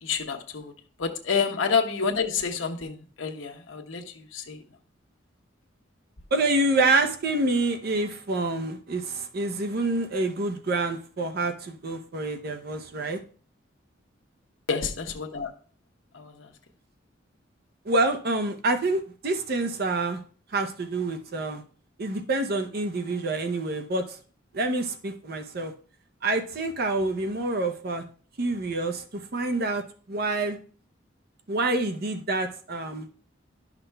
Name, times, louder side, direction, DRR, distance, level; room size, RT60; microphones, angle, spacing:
voice 1, 0.0-4.6 14.7-15.5 16.1-16.5, left 5 dB, 90° left, 3 dB, 0.9 m, -29 dB
voice 2, 6.3-13.2 17.8-20.2 20.5-21.6 22.0-24.2 24.5-25.7 26.2-28.0 28.4-30.6 31.5-33.1, right 2 dB, 55° right, 6 dB, 0.7 m, -27 dB
11.5 x 5.9 x 2.2 m, 0.42 s
head